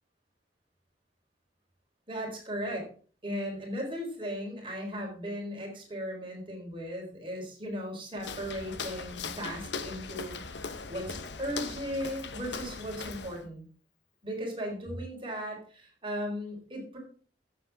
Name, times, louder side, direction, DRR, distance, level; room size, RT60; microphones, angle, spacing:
voice 1, 2.1-2.9 3.2-10.4 10.9-13.6 14.2-17.0, equal, 30° right, 0 dB, 4.3 m, -37 dB
Walk footsteps, 8.2-13.5, left 5 dB, 90° left, 1.2 m, -39 dB
15.0 x 7.6 x 3.7 m, 0.42 s
head